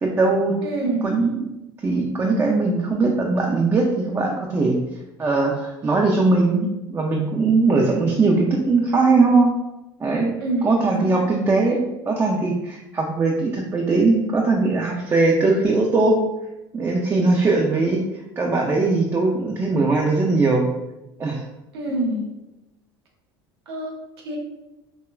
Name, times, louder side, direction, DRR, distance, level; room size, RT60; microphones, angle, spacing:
voice 1, 0.0-0.5 0.8-1.5 1.8-4.8 5.2-9.5 10.0-10.3 10.6-16.2 16.7-18.0 18.4-20.6 21.2-21.4, right 3 dB, 20° right, -1 dB, 0.3 m, -20 dB
voice 2, 0.6-1.1 10.4-11.3 21.7-22.3 23.7-24.0 24.2-24.4, right 2 dB, 85° right, -1 dB, 0.7 m, -26 dB
2.9 x 2.1 x 2.2 m, 0.97 s
hypercardioid pair, 85°, 13 cm